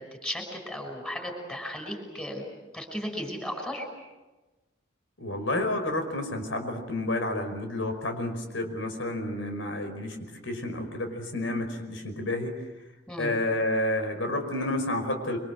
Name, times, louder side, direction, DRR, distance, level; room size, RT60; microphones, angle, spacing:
voice 1, 0.0-2.4 2.7-3.9 13.1-13.3, equal, 5° left, 3 dB, 5.9 m, -35 dB
voice 2, 5.2-12.7 13.2-15.4, left 1 dB, 85° left, 5 dB, 5.3 m, -30 dB
26.0 x 25.0 x 7.8 m, 1.1 s
head